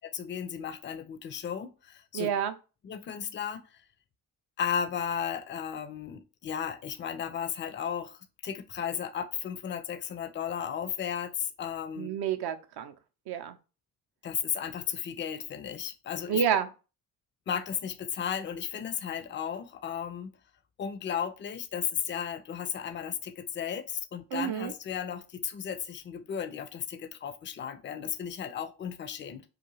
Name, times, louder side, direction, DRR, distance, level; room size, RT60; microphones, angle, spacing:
voice 1, 0.0-2.3 2.8-3.8 4.6-12.1 14.2-16.4 17.5-20.3 20.8-29.4, left 8 dB, 25° left, 11 dB, 0.4 m, -34 dB
voice 2, 2.1-2.5 12.0-12.9 13.3-13.6 16.3-16.7 24.3-24.7, right 8 dB, 55° right, 10 dB, 0.5 m, -29 dB
2.4 x 2.3 x 3.0 m, 0.32 s
hypercardioid pair, 40°, 49 cm